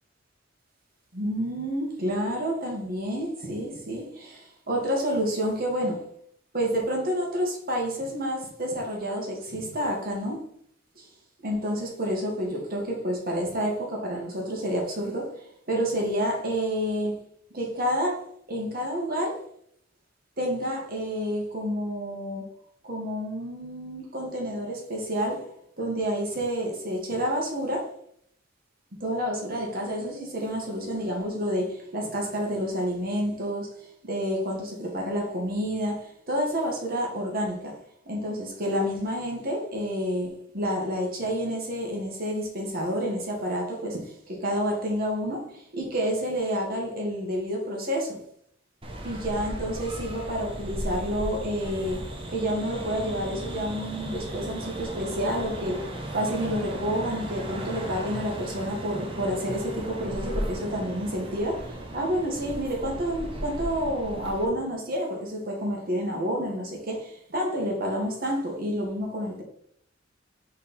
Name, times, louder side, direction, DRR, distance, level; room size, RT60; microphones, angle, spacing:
voice 1, 1.1-6.1 6.5-10.4 11.0-11.1 11.4-17.2 17.5-18.2 18.5-19.4 20.4-22.5 22.8-25.5 25.8-27.9 29.0-33.7 34.0-37.7 38.1-48.2 49.0-55.9 56.1-69.4, equal, 50° right, 0 dB, 1.9 m, -29 dB
sound 1, 48.8-64.5, right 1 dB, 30° right, 1.1 m, -36 dB
5.2 x 4.3 x 5.4 m, 0.67 s
head